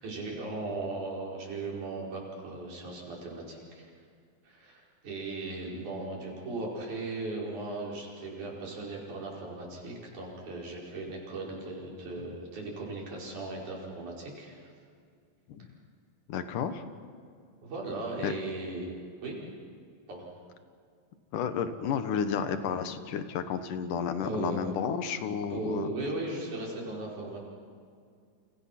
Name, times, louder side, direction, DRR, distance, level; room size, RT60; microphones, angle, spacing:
voice 1, 0.0-3.9 4.4-14.7 17.6-18.9 19.2-19.4 20.1-20.3 24.2-24.6 25.5-27.4, right 2 dB, 70° right, -3 dB, 6.6 m, -37 dB
voice 2, 16.3-16.8 18.2-18.3 21.3-25.9, left 7 dB, 90° left, 9 dB, 2.9 m, -32 dB
29.5 x 28.0 x 6.0 m, 2.3 s
omnidirectional pair, 3.6 m